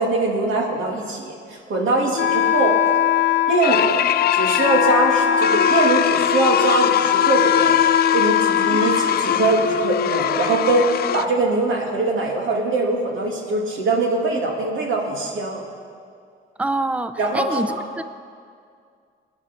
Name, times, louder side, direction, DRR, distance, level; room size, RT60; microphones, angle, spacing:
voice 1, 0.0-2.7 3.5-4.0 4.3-7.7 8.1-15.6 17.2-17.5, right 2 dB, 90° right, 0 dB, 2.5 m, -22 dB
Wind instrument woodwind instrument, 2.2-9.9, left 9 dB, 70° left, 0.8 m, -21 dB
sound 1, 3.6-11.3, left 10 dB, 50° left, 0.4 m, -22 dB
voice 2, 16.6-18.0, right 2 dB, 5° right, 10 dB, 0.5 m, -26 dB
24.5 x 9.7 x 4.4 m, 2.2 s
cardioid pair, 160°, 20 cm